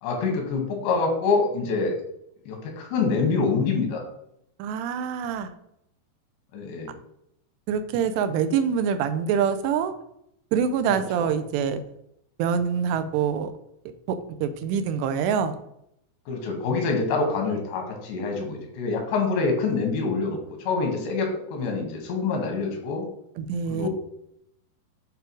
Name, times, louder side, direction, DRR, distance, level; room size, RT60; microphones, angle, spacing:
voice 1, 0.0-2.0 2.5-4.0 6.5-6.9 10.9-11.3 16.3-23.1 23.7-23.9, left 4 dB, 85° left, 2 dB, 3.6 m, -26 dB
voice 2, 4.6-5.5 7.7-9.9 10.5-11.8 12.4-13.5 14.1-15.6 23.4-23.9, right 7 dB, 85° right, 10 dB, 2.7 m, -25 dB
8.9 x 3.3 x 4.6 m, 0.76 s
omnidirectional pair, 4.9 m